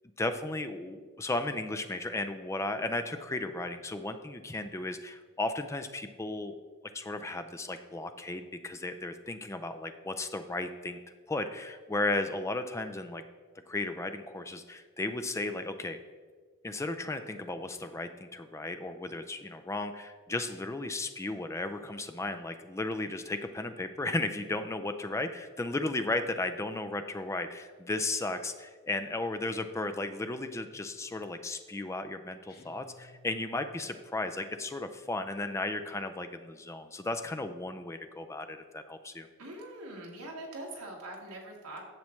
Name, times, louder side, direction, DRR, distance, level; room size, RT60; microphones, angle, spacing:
voice 1, 0.2-6.5 6.9-11.0 11.3-13.2 13.7-16.0 16.6-39.3, left 2 dB, 15° left, 8 dB, 0.4 m, -35 dB
sound 1, 32.5-34.2, left 2 dB, 45° left, 1.5 m, -57 dB
voice 2, 39.4-41.8, right 1 dB, 90° right, -1 dB, 1.8 m, -43 dB
10.5 x 7.4 x 3.2 m, 1.5 s
head